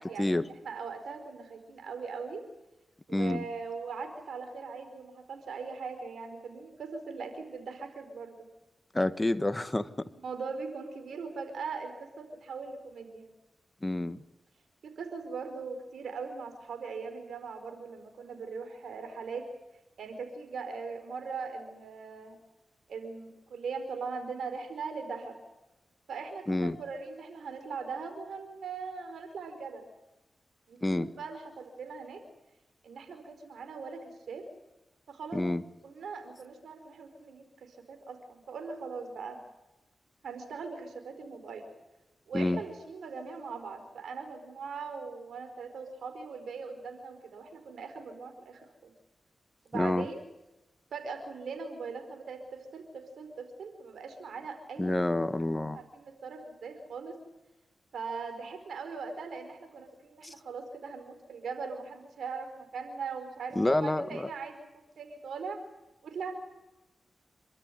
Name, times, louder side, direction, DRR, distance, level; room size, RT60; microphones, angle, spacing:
voice 1, 0.0-2.4 3.1-8.5 10.2-13.3 14.8-19.5 20.0-22.4 22.9-25.4 26.1-29.9 30.7-32.2 32.8-34.5 35.1-35.4 35.8-39.4 40.2-41.7 42.3-48.9 49.6-50.2 50.9-55.1 55.7-57.2 57.9-64.6 65.0-65.6 66.0-66.3, right 5 dB, 85° right, 8 dB, 4.8 m, -40 dB
voice 2, 3.1-3.4 8.9-10.1 13.8-14.2 26.5-26.8 30.8-31.1 35.3-35.6 42.3-42.6 49.7-50.1 54.8-55.8 60.2-60.3 63.5-64.3, left 1 dB, 20° left, 11 dB, 1.5 m, -28 dB
28.5 x 13.5 x 9.4 m, 1.0 s
cardioid pair, 50°, 0 cm